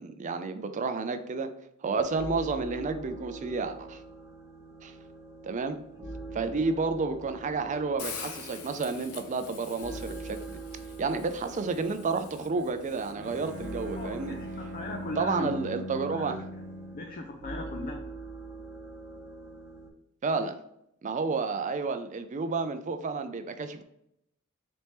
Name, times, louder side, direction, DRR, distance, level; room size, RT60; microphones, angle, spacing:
voice 1, 0.0-1.5 1.8-4.0 4.8-4.9 5.4-5.8 6.3-10.4 11.0-14.4 15.2-16.4 20.2-20.6 21.0-23.8, right 4 dB, 35° right, 9 dB, 0.4 m, -31 dB
sound 1, 1.9-19.9, right 3 dB, 15° right, 1.0 m, -44 dB
Hiss, 8.0-14.1, left 6 dB, 75° left, 0.7 m, -46 dB
Bowed string instrument, 13.1-17.2, equal, 55° right, 0.7 m, -41 dB
voice 2, 14.0-15.5 16.1-16.4 16.9-18.0, left 2 dB, 40° left, 2 dB, 0.5 m, -39 dB
4.1 x 3.4 x 3.0 m, 0.78 s
head